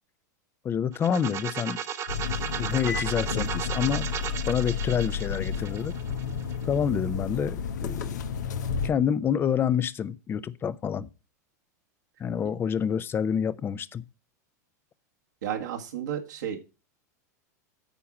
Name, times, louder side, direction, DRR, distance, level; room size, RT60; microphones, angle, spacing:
voice 1, 0.6-1.8 2.6-4.1 4.5-5.9 6.7-8.1 8.8-11.1 12.2-14.0, left 8 dB, 25° left, 0.5 m, -27 dB
sound 1, 0.9-6.7, right 8 dB, 30° right, 0.9 m, -35 dB
sound 2, 2.1-8.9, left 6 dB, 90° left, 1.0 m, -31 dB
voice 2, 15.4-16.6, right 9 dB, 85° right, 1.7 m, -32 dB
9.0 x 4.8 x 7.3 m
hypercardioid pair, 115°, 9 cm